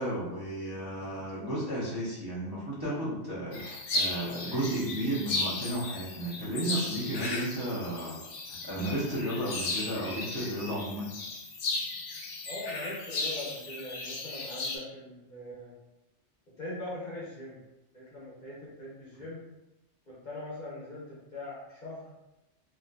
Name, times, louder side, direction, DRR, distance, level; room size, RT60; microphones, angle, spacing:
voice 1, 0.0-8.2 8.5-11.1, right 1 dB, 25° right, -10 dB, 0.6 m, -33 dB
sound 1, 3.5-14.8, left 2 dB, 90° left, 0.9 m, -35 dB
voice 2, 12.5-15.7 16.6-17.6 17.9-19.4 20.1-22.0, left 1 dB, 45° left, -7 dB, 0.8 m, -41 dB
2.6 x 2.5 x 2.2 m, 0.97 s
omnidirectional pair, 1.2 m